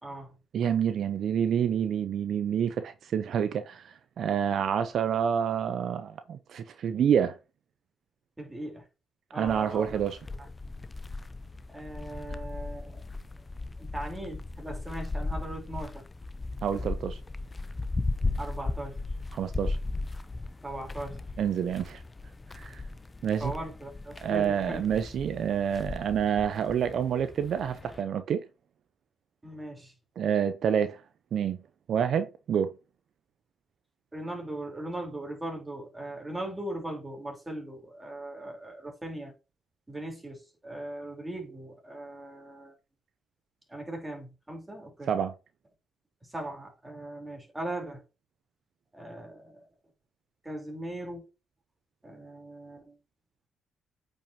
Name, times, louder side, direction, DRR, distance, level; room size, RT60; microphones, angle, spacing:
voice 1, 0.0-0.4 8.4-8.9 9.3-10.0 11.7-13.0 13.8-16.0 18.4-19.0 20.6-21.2 23.4-24.9 29.4-29.9 34.1-39.3 39.9-42.8 43.7-45.1 46.2-48.0 48.9-49.7 50.4-51.2 52.0-53.0, right 1 dB, 15° right, 3.7 m, -39 dB
voice 2, 0.5-7.4 9.3-10.2 16.6-17.2 19.3-19.8 21.4-22.0 22.5-22.8 23.2-23.5 24.2-28.4 30.2-31.0 31.3-31.6 31.9-32.7 45.1-45.3, right 8 dB, 65° right, 0.7 m, -28 dB
sound 1, 9.5-28.0, left 3 dB, 25° left, 0.7 m, -37 dB
8.7 x 5.5 x 2.9 m
cardioid pair, 90°, 0 cm